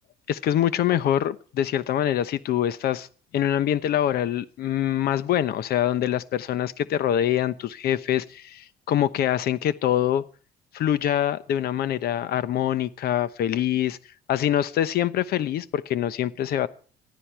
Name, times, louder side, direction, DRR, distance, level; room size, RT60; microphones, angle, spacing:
voice 1, 0.3-3.1 3.3-10.2 10.7-14.0 14.3-16.7, left 11 dB, 65° left, 15 dB, 1.0 m, -24 dB
19.5 x 13.5 x 4.7 m, 0.41 s
cardioid pair, 110°, 17 cm